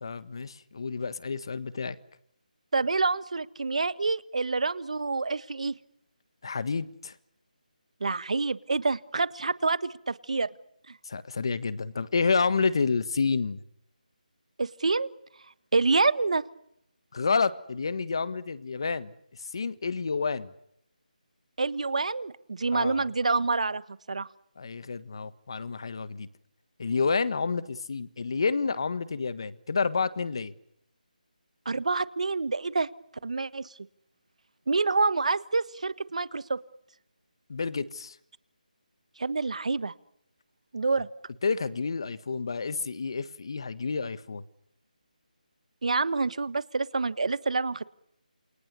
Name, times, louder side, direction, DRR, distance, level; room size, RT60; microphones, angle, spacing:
voice 1, 0.0-1.9 6.4-7.1 11.0-13.6 17.1-19.1 19.4-20.5 22.7-23.1 24.6-26.3 26.8-30.5 37.5-38.1 41.4-44.4, left 4 dB, 35° left, 16 dB, 1.5 m, -29 dB
voice 2, 2.7-5.7 8.0-10.5 10.9-11.0 14.6-15.1 15.7-16.4 21.6-23.8 24.1-24.3 31.6-32.9 33.2-33.7 34.7-36.6 39.2-39.9 40.7-41.1 45.8-47.8, right 3 dB, 50° right, 17 dB, 1.5 m, -27 dB
28.5 x 27.5 x 6.9 m, 0.75 s
figure-of-eight pair, 175°, 5 cm